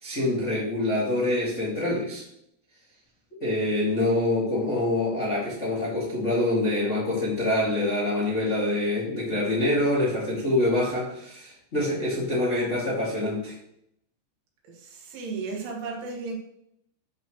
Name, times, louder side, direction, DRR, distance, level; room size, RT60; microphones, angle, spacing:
voice 1, 0.0-2.2 3.4-13.5, left 1 dB, 45° left, -6 dB, 0.9 m, -25 dB
voice 2, 14.7-16.4, right 4 dB, 80° right, 0 dB, 4.1 m, -34 dB
10.5 x 6.9 x 3.1 m, 0.75 s
omnidirectional pair, 5.5 m